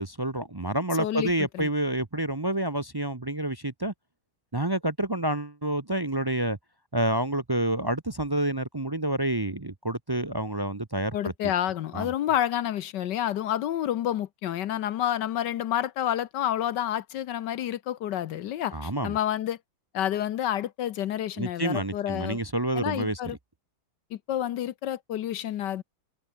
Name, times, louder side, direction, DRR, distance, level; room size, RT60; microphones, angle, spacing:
voice 1, 0.0-3.9 4.5-6.6 6.9-11.3 11.9-12.1 18.7-19.1 21.4-23.2, right 1 dB, 30° right, 0.4 m, -28 dB
voice 2, 1.0-1.7 11.1-19.6 19.9-22.4 22.7-23.4 24.1-25.8, left 11 dB, 70° left, 1.3 m, -29 dB
omnidirectional pair, 2.2 m